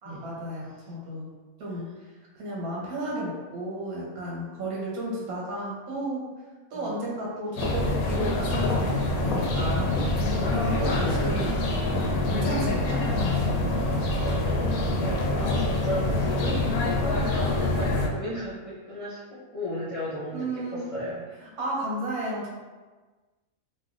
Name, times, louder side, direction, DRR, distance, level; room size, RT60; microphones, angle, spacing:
voice 1, 0.0-1.3 1.6-1.9 2.3-6.3 6.7-10.1 10.5-11.5 11.9-13.6 20.3-20.9 21.6-22.5, right 1 dB, 80° right, -4 dB, 1.3 m, -33 dB
sound 1, 7.6-18.1, left 2 dB, 80° left, 1.0 m, -25 dB
voice 2, 10.8-11.4 14.2-21.3, equal, 55° left, -10 dB, 0.3 m, -34 dB
3.2 x 2.5 x 2.5 m, 1.3 s
omnidirectional pair, 1.5 m